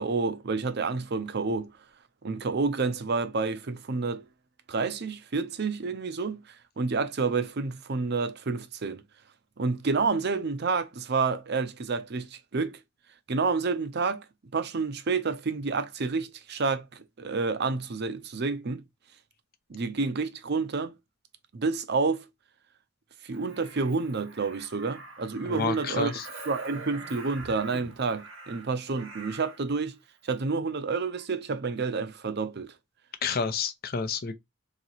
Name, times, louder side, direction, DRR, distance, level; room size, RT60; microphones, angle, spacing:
voice 1, 0.0-1.7 2.2-4.2 4.7-9.0 9.6-12.8 13.3-14.2 14.5-18.8 19.7-21.0 21.5-22.3 23.2-26.1 26.5-30.0 30.2-32.7, right 4 dB, 55° right, 0.6 m, -29 dB
Crow, 23.3-29.7 31.1-31.3, right 3 dB, 75° right, 1.2 m, -45 dB
voice 2, 25.5-26.2 33.2-34.3, left 5 dB, 50° left, 0.6 m, -29 dB
3.0 x 2.8 x 4.1 m
head